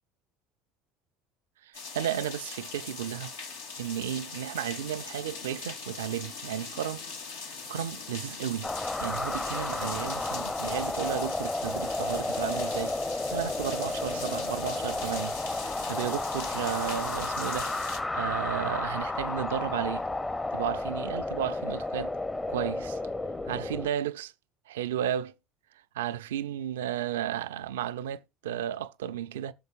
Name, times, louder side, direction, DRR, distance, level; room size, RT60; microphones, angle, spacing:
sound 1, 1.7-18.0, left 4 dB, 85° left, 1.8 m, -40 dB
voice 1, 1.9-3.3 3.8-7.0 7.7-8.7 9.0-13.0 13.3-15.4 15.9-20.0 20.5-22.1 22.5-23.0 23.5-24.3 24.7-25.3 26.0-29.5, right 10 dB, 80° right, 0.5 m, -33 dB
sound 2, 8.6-23.9, left 2 dB, 20° left, 0.8 m, -32 dB
19.5 x 6.6 x 2.4 m
hypercardioid pair, 75°, 0 cm